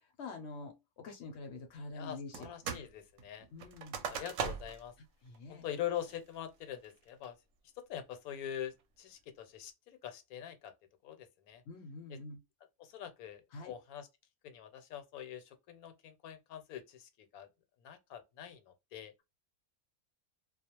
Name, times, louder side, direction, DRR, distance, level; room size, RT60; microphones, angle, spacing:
voice 1, 0.0-2.5 3.5-4.0 5.2-5.7 11.7-12.4 13.5-13.7, left 3 dB, 60° left, 0.7 m, -46 dB
voice 2, 1.9-3.5 4.1-4.9 5.5-7.4 7.8-10.7 11.0-11.6 12.1-12.2 12.8-14.1 14.4-17.5 17.8-19.1, left 10 dB, 80° left, 1.0 m, -44 dB
sound 1, 2.3-2.9 3.2-4.9 5.3-5.4 5.9-6.3 6.8-7.2, right 6 dB, 70° right, 0.9 m, -40 dB
2.4 x 2.0 x 2.8 m
omnidirectional pair, 1.5 m